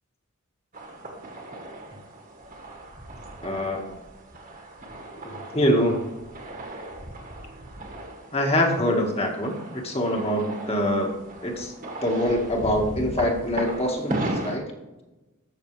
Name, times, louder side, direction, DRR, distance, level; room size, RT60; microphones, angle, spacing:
sound 1, 0.7-14.6, right 1 dB, 40° right, 1.8 m, -37 dB
voice 1, 3.4-4.0 5.2-6.0 8.3-11.1 11.4-11.7 12.0-14.6, equal, 30° left, 2 dB, 1.8 m, -24 dB
14.5 x 6.6 x 3.4 m, 1.1 s
head